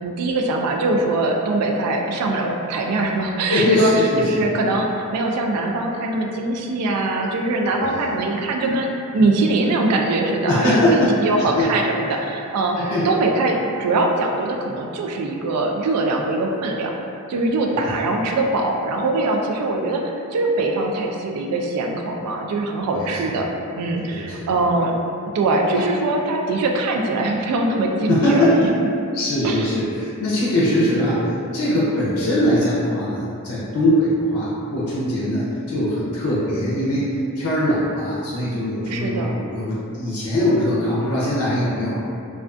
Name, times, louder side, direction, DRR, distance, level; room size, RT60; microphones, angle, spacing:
voice 1, 0.0-16.9 17.3-23.5 23.8-24.9 25.3-28.7 29.4-29.7 38.9-39.4, right 2 dB, 85° right, 1 dB, 0.3 m, -22 dB
voice 2, 3.5-4.4 7.8-8.1 10.5-11.1 11.4-11.7 12.8-13.2 17.7-17.8 23.0-23.1 24.1-24.5 25.7-25.9 28.1-28.7 29.1-42.0, left 1 dB, 70° left, -8 dB, 0.5 m, -21 dB
2.3 x 2.3 x 2.4 m, 2.6 s
head